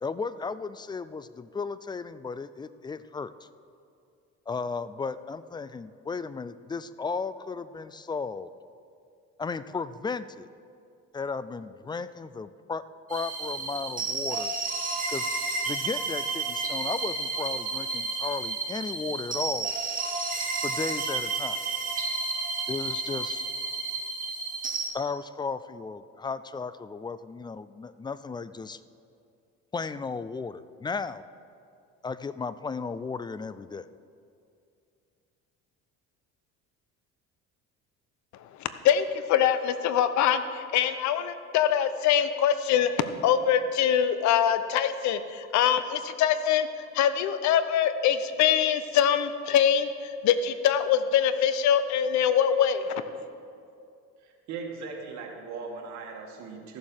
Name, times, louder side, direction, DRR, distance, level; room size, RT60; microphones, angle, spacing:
voice 1, 0.0-3.3 4.5-8.5 9.4-10.5 11.1-12.8 13.1-14.5 15.1-15.3 15.7-19.7 20.6-21.6 22.7-23.5 24.9-28.8 29.7-31.2 32.0-33.9, left 4 dB, 15° left, 15 dB, 0.3 m, -35 dB
sound 1, 13.1-24.9, right 3 dB, 25° right, 2.1 m, -31 dB
voice 2, 38.6-46.7 46.9-52.9, left 9 dB, 70° left, 11 dB, 0.8 m, -24 dB
voice 3, 54.2-56.8, right 4 dB, 70° right, 1 dB, 2.2 m, -39 dB
14.0 x 7.2 x 6.4 m, 2.5 s
cardioid pair, 105°, 30 cm